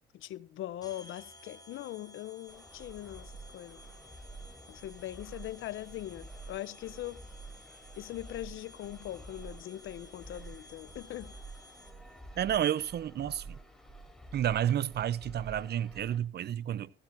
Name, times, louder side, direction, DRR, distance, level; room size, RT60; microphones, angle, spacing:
voice 1, 0.1-3.8 4.7-7.2 8.0-11.3, left 13 dB, 80° left, 0.7 m, -41 dB
sound 1, 0.8-12.2, left 2 dB, 20° left, 4.6 m, -56 dB
sound 2, 2.5-16.2, right 2 dB, ahead, 4.3 m, -49 dB
voice 2, 12.4-13.6 14.3-16.9, right 10 dB, 55° right, 0.6 m, -30 dB
16.5 x 15.5 x 2.6 m
cardioid pair, 90°, 20 cm